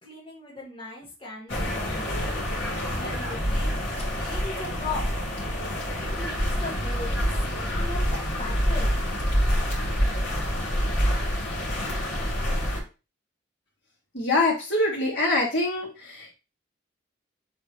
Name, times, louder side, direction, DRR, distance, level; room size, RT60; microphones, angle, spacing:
voice 1, 0.0-2.2 2.9-5.0 6.1-8.0 8.3-8.9, left 3 dB, 25° left, -4 dB, 1.7 m, -38 dB
sound 1, 1.5-12.8, equal, 90° left, 3.0 m, -27 dB
voice 2, 14.1-16.3, left 2 dB, 65° left, -3 dB, 2.5 m, -24 dB
7.5 x 3.7 x 3.4 m, 0.30 s
head